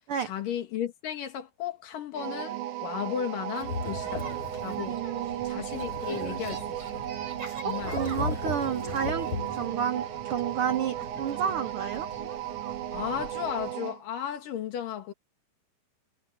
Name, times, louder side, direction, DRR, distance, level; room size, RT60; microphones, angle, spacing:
voice 1, 0.2-4.2 4.6-5.0 5.4-7.0 7.6-8.2 12.9-15.1, left 9 dB, 80° left, 3.6 m, -35 dB
sound 1, 2.2-14.0, right 12 dB, 75° right, 2.7 m, -36 dB
sound 2, 3.6-4.9 5.7-7.2 7.7-9.7, left 4 dB, 50° left, 5.1 m, -37 dB
sound 3, 3.8-13.7, right 3 dB, 50° right, 6.4 m, -44 dB
voice 2, 4.9-5.6 6.1-6.4 7.6-12.1, right 8 dB, 90° right, 1.2 m, -31 dB
omnidirectional pair, 3.8 m